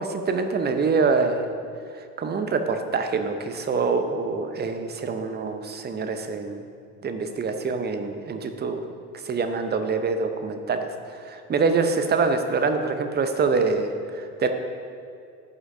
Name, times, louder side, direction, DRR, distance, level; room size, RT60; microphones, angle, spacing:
voice 1, 0.0-1.5 1.9-6.6 7.0-8.8 9.2-14.5, right 4 dB, 20° right, 7 dB, 0.7 m, -25 dB
13.5 x 7.9 x 2.7 m, 2.4 s
figure-of-eight pair, 60°, 45 cm